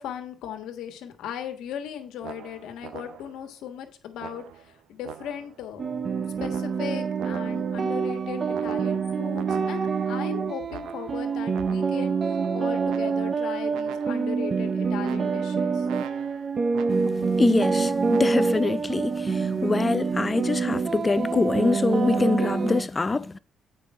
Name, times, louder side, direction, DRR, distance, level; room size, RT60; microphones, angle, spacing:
voice 1, 0.0-5.9 6.4-15.9, left 9 dB, 85° left, 1.4 m, -37 dB
sound 1, 2.2-3.5 4.2-5.7 6.4-7.9 8.5-10.1 10.7-12.1 12.9-13.5 13.7-14.4 15.0-17.3 18.1-18.4, right 10 dB, 85° right, 0.5 m, -43 dB
sound 2, 5.8-22.8, right 5 dB, 45° right, 0.6 m, -26 dB
voice 2, 16.9-23.4, left 3 dB, 25° left, 0.5 m, -25 dB
8.4 x 5.3 x 4.7 m
cardioid pair, 90°, 0 cm